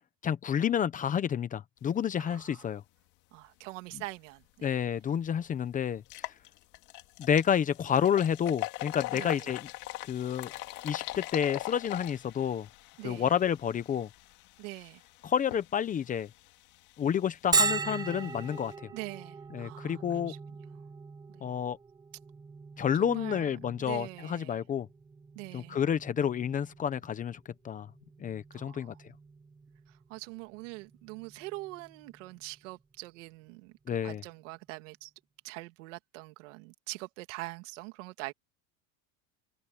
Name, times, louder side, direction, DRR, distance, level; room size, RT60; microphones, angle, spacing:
voice 1, 0.2-2.8 4.6-6.0 7.2-9.7 10.1-10.5 10.8-12.7 13.0-14.1 15.2-16.3 17.0-18.9 19.5-20.3 21.4-21.8 22.8-24.9 25.5-27.4 27.6-27.9 28.2-28.9 33.9-34.2, left 8 dB, 20° left, 0.8 m, -29 dB
voice 2, 2.2-2.7 3.3-4.8 9.1-9.5 13.0-13.4 14.6-15.0 18.9-20.0 20.3-20.4 21.3-21.5 23.0-24.6 25.3-25.8 28.5-29.0 30.1-35.1 35.4-38.3, right 23 dB, 80° right, 2.6 m, -44 dB
sound 1, 4.7-4.8 5.3-5.4 6.0-18.7, left 19 dB, 55° left, 2.1 m, -42 dB
Bell, 17.5-33.0, right 4 dB, 10° right, 0.7 m, -38 dB
cardioid pair, 155°, 37 cm